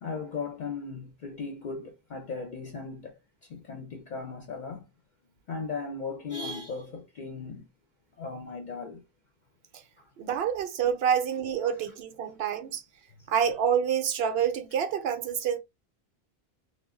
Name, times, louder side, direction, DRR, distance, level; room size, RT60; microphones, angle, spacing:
voice 1, 0.0-4.9 5.5-7.7 8.2-9.0 10.0-10.1 11.6-11.7 13.1-13.3, left 4 dB, 60° left, 0.6 m, -37 dB
voice 2, 10.2-12.8 13.3-15.6, right 8 dB, 80° right, 0.8 m, -27 dB
2.3 x 2.1 x 3.4 m
omnidirectional pair, 1.0 m